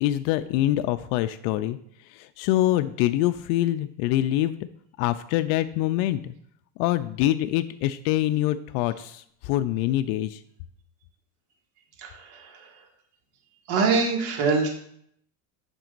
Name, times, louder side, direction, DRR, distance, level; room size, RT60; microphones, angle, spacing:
voice 1, 0.0-1.8 2.1-4.6 5.0-6.3 6.8-10.4, left 14 dB, 70° left, 10 dB, 0.5 m, -25 dB
voice 2, 12.0-12.6 13.7-14.7, right 4 dB, 70° right, 0 dB, 2.0 m, -24 dB
8.9 x 6.0 x 2.5 m, 0.68 s
supercardioid pair, 130°, 38 cm